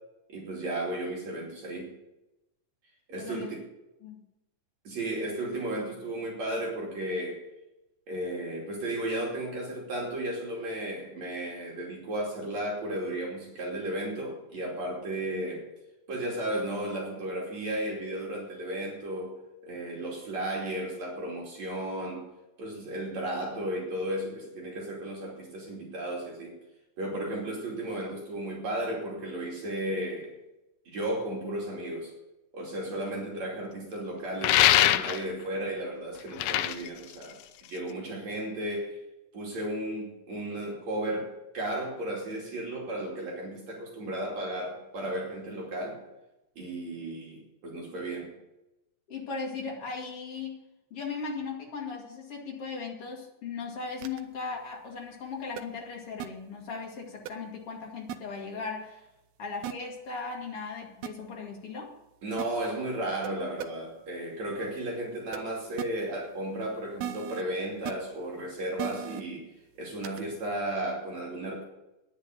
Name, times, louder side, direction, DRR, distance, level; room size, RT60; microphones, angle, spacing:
voice 1, 0.3-1.9 3.1-3.6 4.8-7.5 8.1-15.7 16.1-19.3 19.6-22.2 22.6-26.6 27.0-30.3 30.9-32.1 32.5-37.4 37.7-39.0 39.3-46.0 46.6-48.3 62.2-69.5 69.8-71.6, right 1 dB, 55° right, -3 dB, 3.9 m, -34 dB
voice 2, 3.2-3.5 4.0-4.3 49.1-50.6 50.9-59.0 59.4-61.9, left 4 dB, 45° left, 0 dB, 2.9 m, -37 dB
sound 1, 34.4-35.4 36.2-37.9, left 13 dB, 80° left, 2.0 m, -23 dB
sound 2, 54.0-54.2 55.6-55.7 56.2-56.3 57.3-57.4 58.1-58.2 59.6-59.7 61.0-61.1 62.4-62.5 63.2-63.3 63.6-63.7 65.3-65.4 65.8-65.9 67.0-67.4 67.9-68.0 68.8-69.2 70.0-70.2, right 10 dB, 70° right, 1.9 m, -35 dB
9.9 x 9.7 x 9.0 m, 0.95 s
omnidirectional pair, 3.8 m